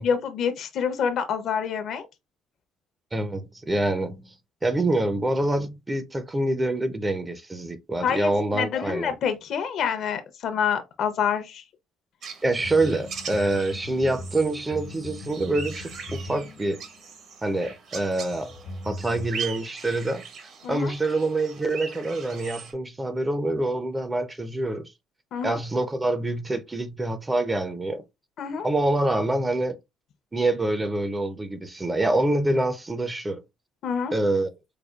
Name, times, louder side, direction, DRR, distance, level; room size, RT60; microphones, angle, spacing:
voice 1, 0.0-2.1 8.0-11.6 20.6-20.9 25.3-25.6 28.4-28.7 33.8-34.2, left 7 dB, 55° left, 0.6 m, -27 dB
voice 2, 3.1-4.3 4.6-9.1 12.4-16.8 17.4-18.5 18.8-20.3 20.7-24.9 25.4-28.0 28.6-29.8 30.3-33.4 34.1-34.5, right 2 dB, 15° right, 0.5 m, -26 dB
sound 1, 12.2-22.7, right 5 dB, 55° right, 0.8 m, -40 dB
sound 2, 12.5-17.3 18.3-19.3, left 1 dB, 75° left, 1.1 m, -39 dB
4.9 x 2.3 x 2.2 m
cardioid pair, 120°, 0 cm